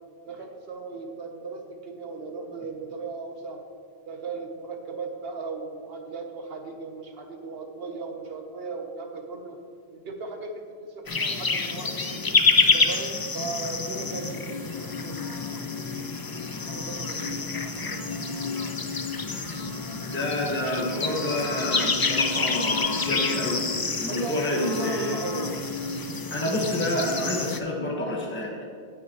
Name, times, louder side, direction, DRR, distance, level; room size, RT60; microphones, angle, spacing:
voice 1, 0.3-3.6 4.1-9.6 9.9-11.9 12.7-16.0 16.4-18.0 24.0-25.5, right 3 dB, 70° right, 4 dB, 1.2 m, -37 dB
sound 1, 11.1-27.6, left 4 dB, 30° left, 0.4 m, -28 dB
sound 2, 14.0-26.3, left 4 dB, 55° left, 1.7 m, -38 dB
voice 2, 20.1-25.2 26.3-28.6, left 1 dB, 10° left, -2 dB, 1.2 m, -28 dB
16.5 x 6.2 x 3.0 m, 2.1 s
omnidirectional pair, 1.0 m